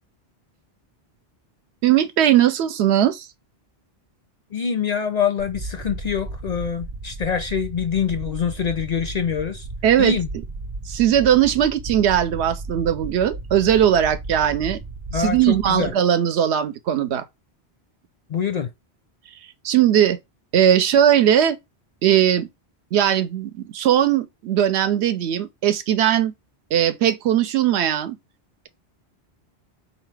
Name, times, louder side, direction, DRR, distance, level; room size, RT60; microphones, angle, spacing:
voice 1, 1.8-3.3 9.8-10.2 10.9-14.8 15.1-17.2 19.6-20.2 20.5-21.6 22.0-22.5 22.9-26.3 26.7-28.2, right 10 dB, 85° right, 0.9 m, -19 dB
voice 2, 4.5-9.7 10.0-10.3 15.1-15.9 18.3-18.7, left 7 dB, 55° left, 0.5 m, -25 dB
sound 1, 5.4-15.9, right 3 dB, 50° right, 0.4 m, -35 dB
3.9 x 2.8 x 3.2 m
omnidirectional pair, 1.1 m